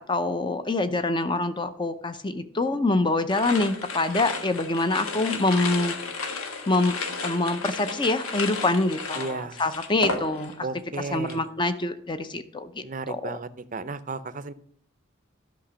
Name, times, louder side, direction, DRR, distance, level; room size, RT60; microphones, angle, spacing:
voice 1, 0.1-6.0 6.3-6.9 7.2-10.7 11.1-13.4, left 2 dB, 20° left, 11 dB, 0.6 m, -25 dB
sound 1, 3.3-10.7 11.0-11.5, left 3 dB, 90° left, 1.4 m, -33 dB
voice 2, 9.2-9.6 10.6-11.4 12.8-14.5, right 3 dB, 40° right, 13 dB, 0.5 m, -34 dB
11.5 x 5.9 x 6.2 m, 0.62 s
head